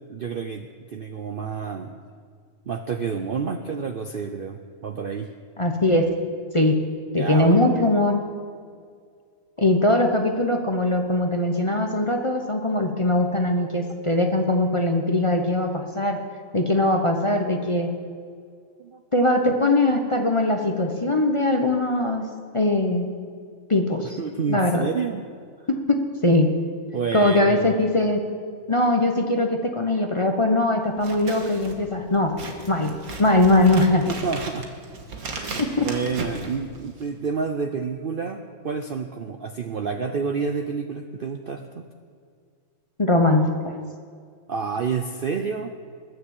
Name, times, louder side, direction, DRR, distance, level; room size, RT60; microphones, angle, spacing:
voice 1, 0.1-1.9 2.7-5.3 7.1-7.8 18.8-19.0 24.2-25.2 26.9-27.7 34.2-34.7 35.3-41.8 44.5-45.7, right 5 dB, 55° right, 6 dB, 0.6 m, -29 dB
voice 2, 5.6-6.0 6.5-6.7 7.1-8.2 9.6-16.2 16.5-17.9 19.1-22.3 22.5-23.1 23.7-24.2 24.5-24.9 26.2-26.5 27.1-28.2 28.7-32.3 32.7-32.9 33.2-34.0 35.6-35.9 43.0-43.7, left 1 dB, 25° left, 4 dB, 0.8 m, -21 dB
Scissors, 30.9-37.2, right 3 dB, 70° right, 1.9 m, -36 dB
20.5 x 7.0 x 7.3 m, 2.1 s
omnidirectional pair, 1.6 m